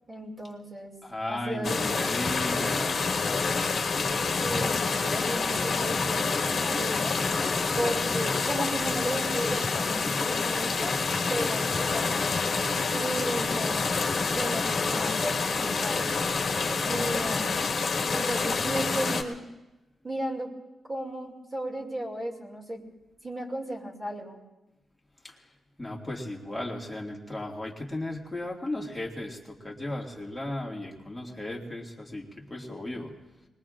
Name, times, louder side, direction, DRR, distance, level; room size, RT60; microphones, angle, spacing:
voice 1, 0.1-0.9 1.3-2.9 4.4-7.2 7.8-10.9 11.3-13.9 14.3-17.5 18.1-19.4 20.0-20.5 20.9-22.8 23.2-24.4, right 1 dB, 25° right, -1 dB, 2.4 m, -35 dB
voice 2, 1.0-3.6 25.2-25.5 25.8-33.1, left 1 dB, 5° left, -2 dB, 2.1 m, -36 dB
sound 1, 1.6-19.2, left 4 dB, 45° left, 1.5 m, -27 dB
28.0 x 21.0 x 2.5 m, 1.0 s
wide cardioid pair, 175°, 0 cm